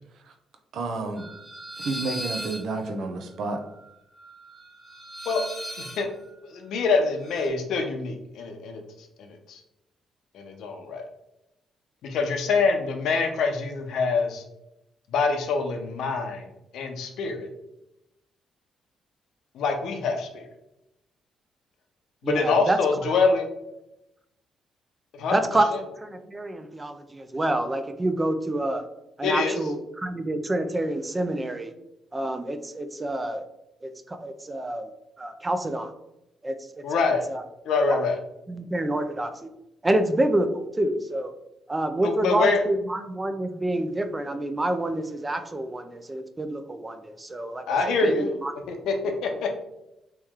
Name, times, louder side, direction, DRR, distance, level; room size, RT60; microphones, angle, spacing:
voice 1, 0.7-1.3 1.8-3.6, right 3 dB, 70° right, 5 dB, 0.5 m, -30 dB
sound 1, 1.2-7.5, right 1 dB, 5° left, 1.1 m, -39 dB
voice 2, 5.8-6.1 6.4-8.8 9.2-9.6 10.3-11.0 12.0-14.4 15.1-16.5 16.7-17.5 19.5-20.5 22.2-23.5 25.1-25.4 29.2-29.6 36.8-37.3 37.6-38.2 42.0-42.6 47.7-48.3 48.7-49.6, left 4 dB, 80° left, 4 dB, 0.7 m, -25 dB
voice 3, 22.2-22.8 25.3-25.7 26.0-28.8 29.2-31.7 32.1-33.4 33.8-34.9 35.2-35.9 36.4-37.4 37.9-38.0 38.5-39.5 39.8-41.3 41.7-48.5, right 1 dB, 20° right, 8 dB, 0.4 m, -27 dB
3.1 x 3.0 x 3.5 m, 0.87 s
cardioid pair, 90°, 0 cm